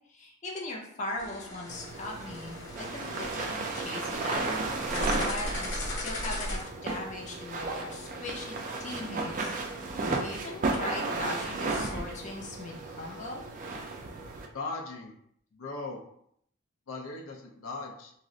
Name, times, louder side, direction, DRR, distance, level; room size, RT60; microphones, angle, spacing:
voice 1, 0.1-9.5 10.1-13.4, left 2 dB, 35° left, -2 dB, 0.5 m, -39 dB
sound 1, 1.2-6.6, left 1 dB, 60° left, 0.8 m, -37 dB
sound 2, 1.7-14.5, right 3 dB, 40° right, 0.3 m, -34 dB
Piano, 4.9-11.3, equal, 5° right, 0.7 m, -50 dB
voice 2, 14.5-15.1 15.6-16.0 16.9-18.1, left 3 dB, 90° left, 2 dB, 0.5 m, -38 dB
2.4 x 2.0 x 3.6 m, 0.70 s
head